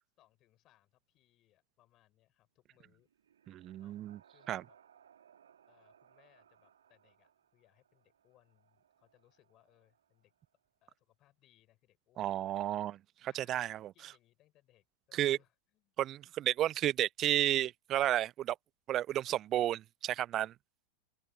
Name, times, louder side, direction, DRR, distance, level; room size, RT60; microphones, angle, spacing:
voice 1, 0.2-3.1 3.8-4.1 4.3-4.8 5.7-10.3 10.8-12.5 13.3-15.9, left 15 dB, 35° left, 7.6 m, -70 dB
sound 1, 2.8-10.7, right 9 dB, 65° right, 2.4 m, -66 dB
voice 2, 3.5-4.2 4.5-4.6 12.2-13.9 15.1-15.4 16.0-18.6 18.9-20.5, right 12 dB, 30° right, 0.4 m, -32 dB
figure-of-eight pair, 90°, 0 cm